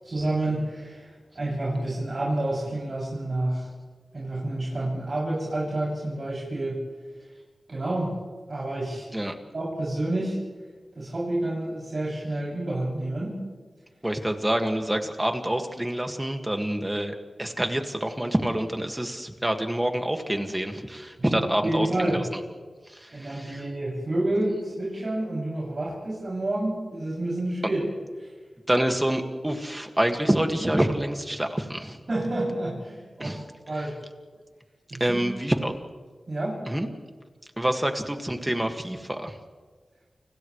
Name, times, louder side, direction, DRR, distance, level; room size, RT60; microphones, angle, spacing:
voice 1, 0.0-3.7 4.1-6.8 7.7-8.1 8.5-9.1 9.5-10.4 11.0-13.4 21.3-22.2 23.1-27.9 28.2-28.3 32.1-33.4 33.7-34.0 34.9-35.2 36.3-36.6, right 1 dB, 50° right, -6 dB, 7.2 m, -29 dB
voice 2, 14.0-22.4 22.9-23.6 28.7-32.0 33.2-33.5 33.7-33.9 35.0-35.7 36.7-36.9 37.6-39.4, right 1 dB, 15° right, 4 dB, 2.0 m, -27 dB
30.0 x 29.0 x 3.3 m, 1.4 s
wide cardioid pair, 105°, 0 cm